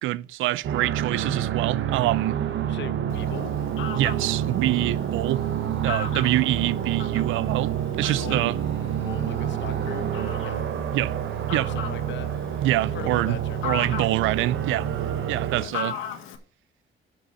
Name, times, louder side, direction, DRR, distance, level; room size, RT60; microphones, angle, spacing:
voice 1, 0.0-2.4 3.9-5.4 5.8-8.6 10.9-11.1 11.5-11.7 12.6-13.4 13.6-14.9 15.3-15.9, right 15 dB, 90° right, 0.4 m, -25 dB
sound 1, 0.6-15.6, right 10 dB, 70° right, 1.0 m, -28 dB
voice 2, 2.7-3.5 8.2-8.5 9.0-10.6 11.6-12.4 12.9-14.1 15.6-16.0, left 10 dB, 65° left, 0.9 m, -40 dB
Fowl, 3.1-16.4, left 7 dB, 90° left, 1.2 m, -38 dB
6.8 x 6.2 x 6.2 m
cardioid pair, 90°, 20 cm